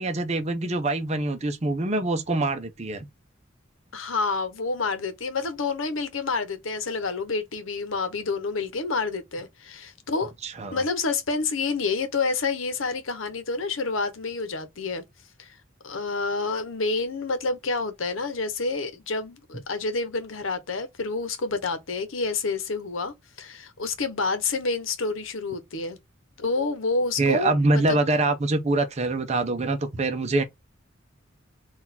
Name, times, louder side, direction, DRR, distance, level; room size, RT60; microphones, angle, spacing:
voice 1, 0.0-3.1 10.4-10.8 27.2-30.4, right 2 dB, 35° right, 0.6 m, -24 dB
voice 2, 3.9-10.3 10.7-15.0 15.4-15.6 15.8-26.0 26.4-28.0, left 4 dB, 90° left, 0.9 m, -28 dB
4.0 x 2.5 x 4.1 m
head